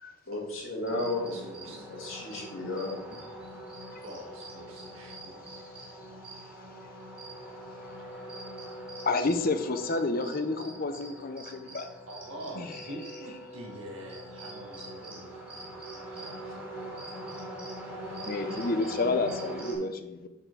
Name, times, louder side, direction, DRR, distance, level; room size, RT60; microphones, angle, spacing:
voice 1, 0.3-3.0, left 2 dB, 75° left, -2 dB, 2.0 m, -34 dB
sound 1, 0.9-19.7, right 1 dB, 5° right, 1.8 m, -42 dB
voice 2, 1.3-1.9 3.1-3.2 4.0-5.5 11.6-11.8 12.1-17.3, right 1 dB, 85° right, -1 dB, 1.7 m, -46 dB
voice 3, 6.6-6.9 7.7-7.8 9.0-11.9 12.6-12.7 18.2-20.3, left 3 dB, 45° left, 9 dB, 0.6 m, -30 dB
7.8 x 4.3 x 4.6 m, 1.0 s
head